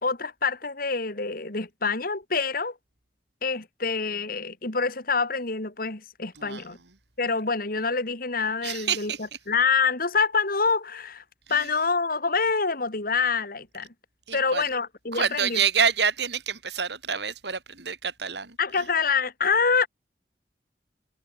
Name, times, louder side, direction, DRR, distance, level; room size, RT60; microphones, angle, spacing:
voice 1, 0.0-2.8 3.4-6.8 7.2-11.2 11.5-13.9 14.3-15.6 18.6-19.9, left 5 dB, 55° left, 3.0 m, -26 dB
voice 2, 8.6-9.2 11.5-11.7 14.3-14.6 15.1-18.8, right 6 dB, 75° right, 4.0 m, -27 dB
head